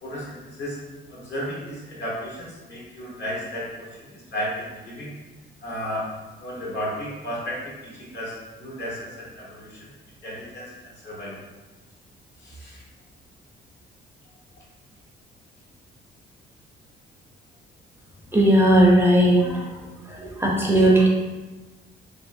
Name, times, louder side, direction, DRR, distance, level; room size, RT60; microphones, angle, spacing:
voice 1, 0.0-0.8 1.1-5.1 5.6-6.1 6.4-9.9 10.2-11.3 12.4-12.8, equal, 60° left, -6 dB, 1.4 m, -34 dB
voice 2, 18.3-19.6 20.1-21.1, right 1 dB, 10° right, -2 dB, 0.5 m, -17 dB
3.1 x 3.1 x 2.6 m, 1.2 s
cardioid pair, 90°, 20 cm